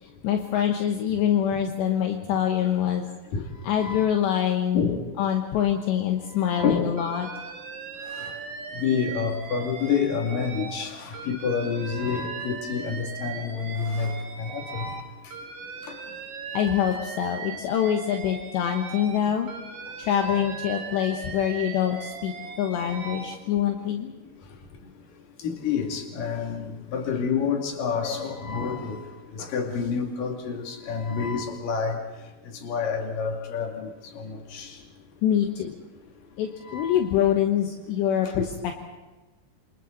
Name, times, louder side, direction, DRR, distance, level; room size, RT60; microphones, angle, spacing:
voice 1, 0.0-3.1 3.6-4.9 5.2-7.3 16.5-19.5 20.0-24.1 35.2-35.8 36.4-38.4, left 9 dB, 75° left, 3 dB, 3.3 m, -25 dB
voice 2, 3.7-4.1 4.7-5.0 6.5-6.9 8.2-8.3 8.8-14.1 14.4-15.0 16.6-16.7 20.2-20.5 22.9-23.1 25.4-29.0 29.3-32.0 32.6-33.9 34.2-34.7 36.7-37.0, left 6 dB, 50° left, 1 dB, 3.9 m, -28 dB
Alarm, 7.0-10.8 11.1-15.0 15.3-19.2 19.5-23.3, right 5 dB, 60° right, 1.6 m, -39 dB
28.0 x 27.0 x 4.1 m, 1.2 s
omnidirectional pair, 5.3 m